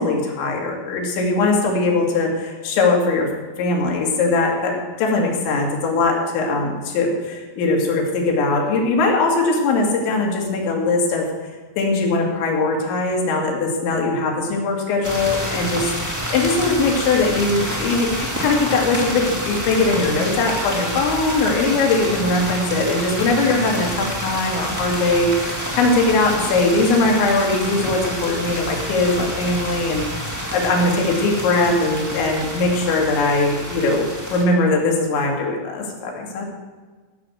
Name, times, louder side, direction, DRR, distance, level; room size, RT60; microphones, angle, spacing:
voice 1, 0.0-3.3 3.6-11.3 11.8-30.0 30.5-36.5, left 3 dB, 80° left, 0 dB, 4.5 m, -20 dB
sound 1, 15.0-34.4, equal, 20° right, 0.4 m, -28 dB
15.5 x 6.2 x 7.7 m, 1.4 s
omnidirectional pair, 5.2 m